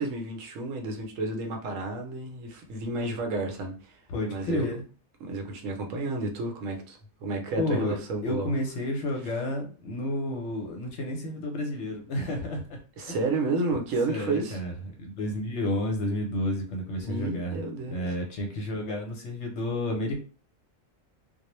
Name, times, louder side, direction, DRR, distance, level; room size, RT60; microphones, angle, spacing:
voice 1, 0.0-4.0 4.3-4.7 5.2-8.5 13.0-14.6 17.0-18.1, right 3 dB, 75° right, 0.9 m, -31 dB
voice 2, 4.1-4.8 7.6-13.2 14.1-17.6 17.9-20.2, left 1 dB, 65° left, 0.9 m, -31 dB
2.3 x 2.0 x 2.9 m
omnidirectional pair, 1.4 m